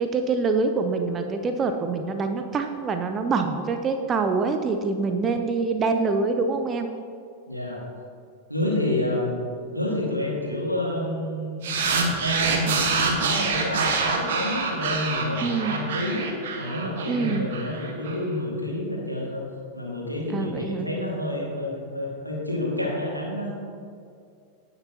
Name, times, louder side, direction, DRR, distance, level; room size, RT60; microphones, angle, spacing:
voice 1, 0.0-6.9 15.4-15.8 17.1-17.5 20.3-20.9, right 4 dB, 25° right, 6 dB, 0.6 m, -25 dB
voice 2, 7.5-7.8 8.5-9.4 9.7-11.7 12.1-16.2 16.5-19.5 19.7-23.5, left 1 dB, 90° right, -2 dB, 2.0 m, -29 dB
sound 1, 11.6-18.2, right 5 dB, 55° right, 1.3 m, -26 dB
16.5 x 6.7 x 2.9 m, 2.4 s
figure-of-eight pair, 90°, 0 cm